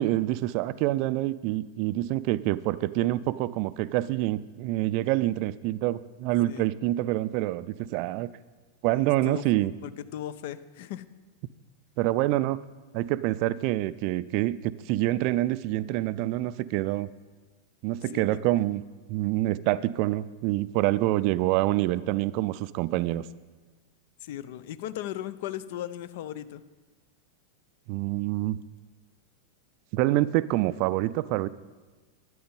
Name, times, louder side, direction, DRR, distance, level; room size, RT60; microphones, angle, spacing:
voice 1, 0.0-8.3 8.8-9.7 12.0-12.6 12.9-17.1 17.8-18.8 19.1-23.3 27.9-28.6 29.9-31.5, right 16 dB, 45° right, 17 dB, 0.4 m, -26 dB
voice 2, 8.9-11.0 18.1-18.4 24.2-26.6, left 12 dB, 50° left, 15 dB, 0.6 m, -37 dB
12.5 x 9.4 x 5.4 m, 1.3 s
figure-of-eight pair, 90°, 0 cm